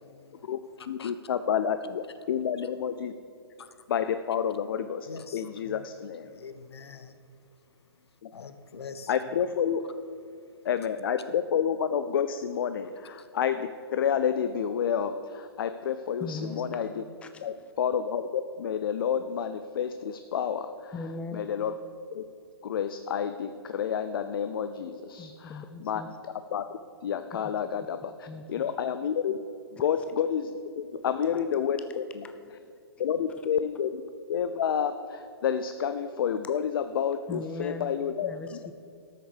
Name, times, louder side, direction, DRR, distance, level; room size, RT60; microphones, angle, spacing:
voice 1, 0.0-0.5 0.8-1.1 2.6-2.7 3.6-3.9 5.0-5.9 6.2-9.2 10.3-10.7 13.2-13.3, left 5 dB, 75° left, 10 dB, 1.1 m, -47 dB
voice 2, 0.9-3.1 3.9-5.1 5.3-6.3 8.2-8.5 9.1-9.8 10.6-17.0 17.4-20.9 21.3-21.7 22.1-22.2 22.6-26.0 26.5-26.6 27.0-29.4 29.8-30.5 30.8-32.2 33.0-34.0 34.3-38.3, left 8 dB, 60° left, 10 dB, 0.6 m, -29 dB
voice 3, 16.2-16.8 17.2-17.5 20.9-21.5 25.2-26.1 28.3-28.4 31.3-31.4 31.8-31.9 32.2-32.6 37.3-37.9 38.2-38.7, left 3 dB, 10° left, 8 dB, 0.5 m, -39 dB
13.0 x 6.6 x 6.7 m, 2.5 s
hypercardioid pair, 135°, 14 cm